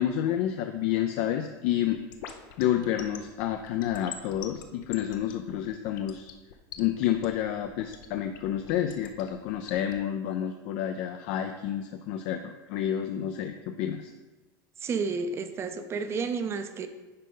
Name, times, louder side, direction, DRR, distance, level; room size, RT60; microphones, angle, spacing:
voice 1, 0.0-2.0 2.6-6.3 6.8-14.1, left 11 dB, 60° left, 6 dB, 0.5 m, -29 dB
sound 1, 1.9-9.9, left 10 dB, 90° left, 0.8 m, -43 dB
voice 2, 14.8-16.9, right 4 dB, 25° right, 9 dB, 0.6 m, -31 dB
9.6 x 5.1 x 3.9 m, 1.2 s
supercardioid pair, 150°, 11 cm